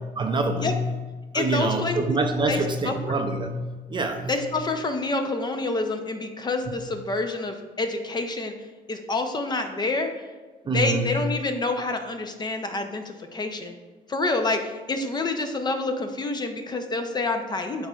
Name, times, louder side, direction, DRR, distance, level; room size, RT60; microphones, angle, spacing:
voice 1, 0.2-0.8 1.3-4.4 6.8-6.9 10.7-11.2, right 2 dB, 30° right, 5 dB, 0.5 m, -26 dB
voice 2, 1.3-2.2 2.5-3.2 4.3-8.5 8.9-10.2 10.6-13.7 14.1-17.9, left 2 dB, 25° left, 6 dB, 0.6 m, -28 dB
10.5 x 3.9 x 2.4 m, 1.3 s
cardioid pair, 110°, 17 cm